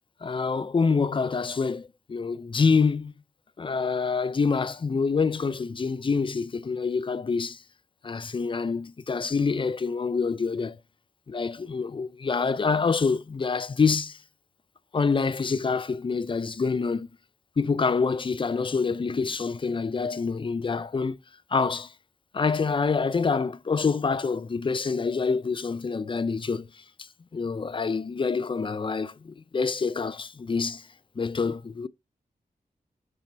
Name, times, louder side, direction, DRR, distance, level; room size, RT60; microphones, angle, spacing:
voice 1, 0.2-3.1 3.6-7.6 8.0-10.8 11.3-14.2 14.9-17.1 17.6-21.2 21.5-21.9 22.3-26.8 27.3-30.9 31.2-31.9, left 5 dB, 35° left, 0.4 m, -26 dB
7.1 x 3.3 x 4.4 m
wide cardioid pair, 85°, 15 cm